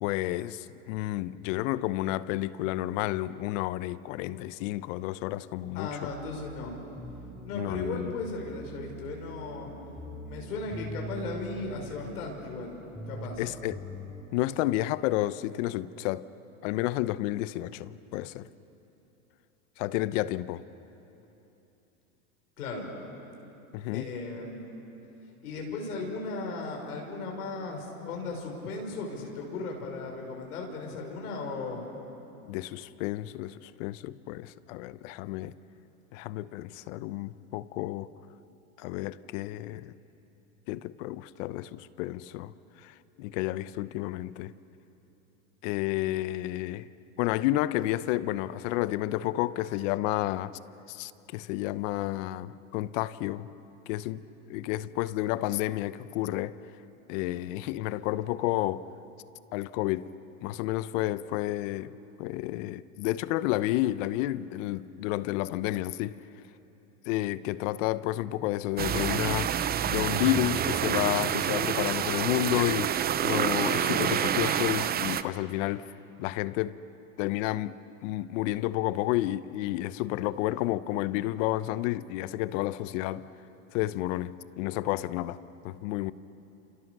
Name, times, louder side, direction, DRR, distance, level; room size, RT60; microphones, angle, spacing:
voice 1, 0.0-6.1 7.5-8.1 13.4-13.8 14.3-16.3 16.6-18.5 19.8-20.6 23.7-24.1 32.5-35.5 36.1-38.1 38.8-39.9 40.7-44.5 45.6-46.9 47.2-50.6 50.9-53.5 53.9-56.6 57.1-58.9 59.5-60.1 60.4-66.2 67.1-69.5 69.9-72.9 73.2-75.9 76.2-76.8 77.2-77.7 78.0-83.3 83.7-85.4 85.6-86.1, left 16 dB, 60° left, 0.9 m, -31 dB
voice 2, 5.7-6.8 7.4-9.7 10.2-13.5 22.6-22.9 23.9-24.7 25.4-31.8, left 3 dB, 85° left, 6.2 m, -36 dB
sound 1, 6.0-14.2, right 1 dB, 5° left, 5.0 m, -43 dB
sound 2, 68.8-75.2, right 9 dB, 20° right, 0.7 m, -28 dB
29.5 x 28.0 x 6.8 m
hypercardioid pair, 115°, 44 cm